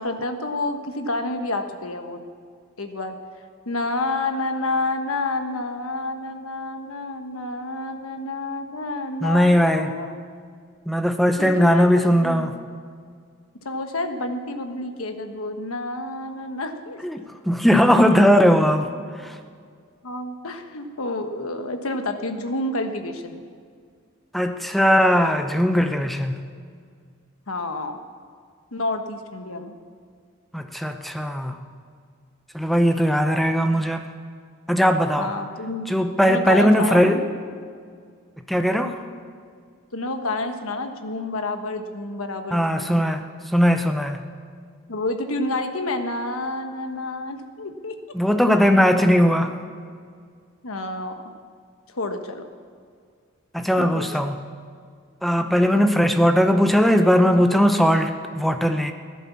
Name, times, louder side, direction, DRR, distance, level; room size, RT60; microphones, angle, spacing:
voice 1, 0.0-2.2 2.8-3.1 3.7-10.2 11.4-12.6 13.6-17.0 20.0-23.4 27.5-28.0 28.7-29.8 32.9-33.3 35.2-35.8 36.3-37.2 39.9-43.0 44.9-48.0 50.6-51.2 51.9-52.4 53.8-54.1 55.7-55.9, left 2 dB, 75° left, 6 dB, 1.2 m, -29 dB
voice 2, 9.2-9.9 10.9-12.5 17.0-18.9 19.2-19.3 24.3-26.3 30.5-31.6 32.5-34.0 34.7-35.3 35.9-37.2 38.5-39.0 42.5-43.2 43.5-44.2 48.1-49.5 53.5-54.4 55.2-58.9, equal, ahead, 6 dB, 0.7 m, -19 dB
15.5 x 11.0 x 7.2 m, 2.1 s
head